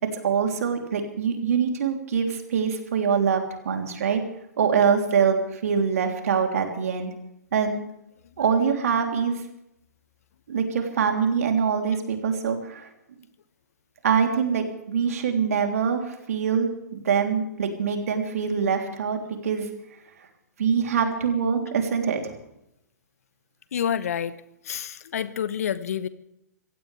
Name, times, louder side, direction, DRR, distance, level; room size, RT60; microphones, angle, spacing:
voice 1, 0.0-4.2 4.6-7.1 7.5-7.8 8.4-9.4 10.5-12.9 14.0-19.7 20.6-22.3, right 6 dB, 60° right, 3 dB, 3.5 m, -24 dB
voice 2, 23.7-24.3 24.6-26.1, left 8 dB, 60° left, 14 dB, 1.2 m, -28 dB
25.0 x 16.5 x 3.5 m, 0.83 s
figure-of-eight pair, 115°, 9 cm